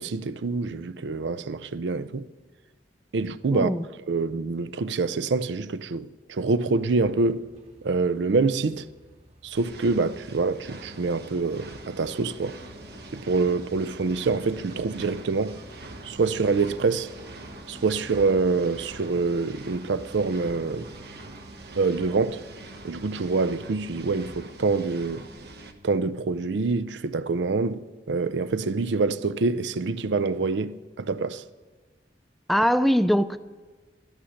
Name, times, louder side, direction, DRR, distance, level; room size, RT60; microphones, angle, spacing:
voice 1, 0.0-2.3 3.1-3.7 4.1-7.5 7.8-8.9 9.4-12.5 13.1-15.6 16.0-17.1 17.7-20.9 21.7-22.4 22.8-25.3 25.8-31.4, right 4 dB, 85° right, 0.5 m, -26 dB
voice 2, 3.5-3.9 32.5-33.4, equal, ahead, 0.3 m, -21 dB
sound 1, 6.9-24.4, right 1 dB, 40° right, 2.1 m, -50 dB
sound 2, 9.5-25.7, right 2 dB, 65° right, 1.0 m, -44 dB
11.5 x 11.5 x 6.4 m
head